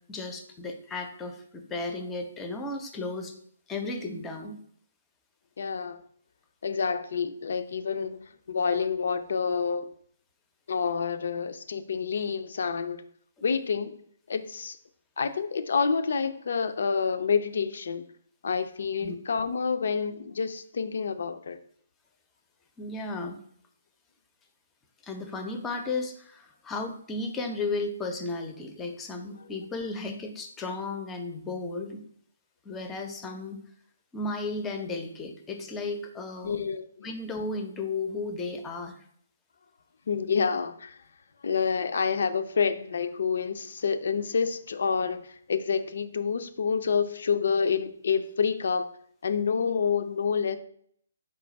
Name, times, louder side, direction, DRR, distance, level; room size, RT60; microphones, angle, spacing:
voice 1, 0.1-3.3 3.7-4.6 19.0-19.2 22.8-23.4 25.0-32.1 32.6-33.6 34.1-36.6 37.0-39.0, left 3 dB, 15° left, 5 dB, 0.6 m, -34 dB
voice 2, 5.6-6.0 6.6-9.9 10.7-13.0 13.4-14.0 14.3-14.8 15.2-18.1 18.4-21.6 36.4-37.1 40.1-41.0 41.4-48.9 49.2-50.6, left 6 dB, 60° left, 10 dB, 0.4 m, -28 dB
4.4 x 2.4 x 4.0 m, 0.64 s
figure-of-eight pair, 135°, 0 cm